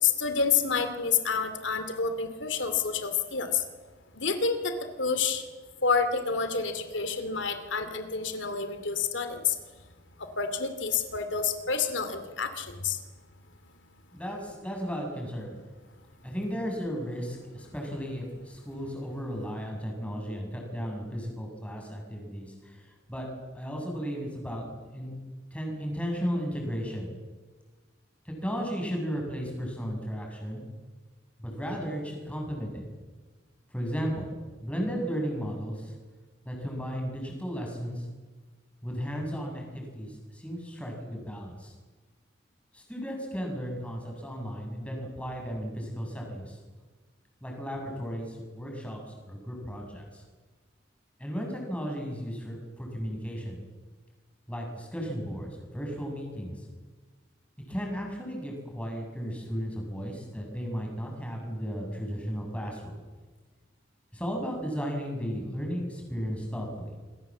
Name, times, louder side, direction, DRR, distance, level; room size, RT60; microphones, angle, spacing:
voice 1, 0.0-3.6 4.2-5.4 5.8-9.5 10.4-13.0, left 5 dB, 90° left, 9 dB, 2.6 m, -28 dB
voice 2, 14.1-15.6 16.2-23.3 23.5-25.1 25.5-27.1 28.3-30.6 31.4-32.8 33.7-34.3 34.6-35.9 36.4-38.1 38.8-41.7 42.7-46.6 47.4-49.0 49.3-50.2 51.2-53.6 54.5-56.7 57.7-63.0 64.1-67.0, equal, 5° left, 1 dB, 7.2 m, -35 dB
28.0 x 22.5 x 7.5 m, 1.3 s
head